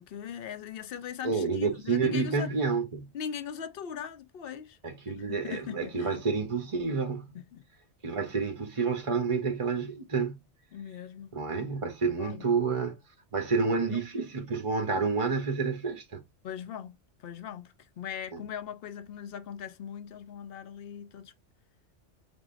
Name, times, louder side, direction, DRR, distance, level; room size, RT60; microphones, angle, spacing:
voice 1, 0.0-2.5 3.1-4.8 5.2-6.2 7.3-7.6 10.7-11.3 12.2-12.5 13.9-14.0 16.4-21.3, left 8 dB, 60° left, 0.8 m, -40 dB
voice 2, 1.2-3.1 4.8-7.3 8.0-10.4 11.3-13.0 13.3-16.2 18.3-18.4, right 4 dB, 35° right, 0.6 m, -29 dB
5.1 x 3.6 x 2.5 m
omnidirectional pair, 1.2 m